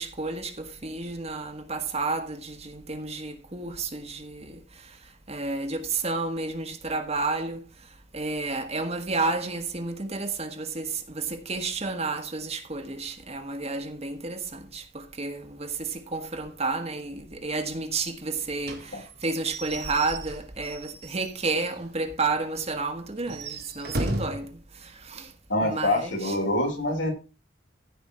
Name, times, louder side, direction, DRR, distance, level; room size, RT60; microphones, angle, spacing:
voice 1, 0.0-4.6 5.3-7.6 8.1-24.5 25.1-25.3 25.6-26.4, right 3 dB, 35° right, 1.4 m, -31 dB
Slam / Squeak / Wood, 18.6-21.8 22.2-22.3 22.6-22.7 23.2-24.5, right 1 dB, 55° right, 1.9 m, -35 dB
voice 2, 25.5-27.1, left 1 dB, 80° left, 4.8 m, -25 dB
15.0 x 5.2 x 4.3 m
head